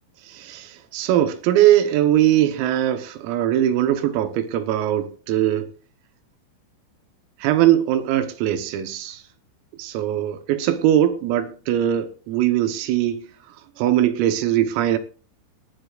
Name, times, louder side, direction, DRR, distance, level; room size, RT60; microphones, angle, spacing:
voice 1, 0.3-5.7 7.4-9.2 9.8-13.3 13.8-15.0, right 12 dB, 85° right, 3.7 m, -21 dB
18.5 x 11.5 x 2.4 m
omnidirectional pair, 5.9 m